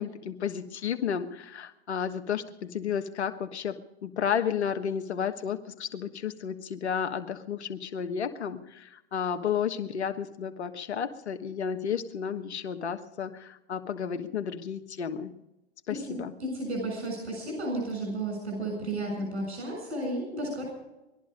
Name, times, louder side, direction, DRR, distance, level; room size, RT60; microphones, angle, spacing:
voice 1, 0.0-15.3 15.9-16.3, left 7 dB, 85° left, 7 dB, 1.4 m, -32 dB
voice 2, 15.9-20.7, right 1 dB, 85° right, 1 dB, 7.3 m, -33 dB
20.5 x 12.5 x 5.2 m, 0.95 s
hypercardioid pair, 120°, 32 cm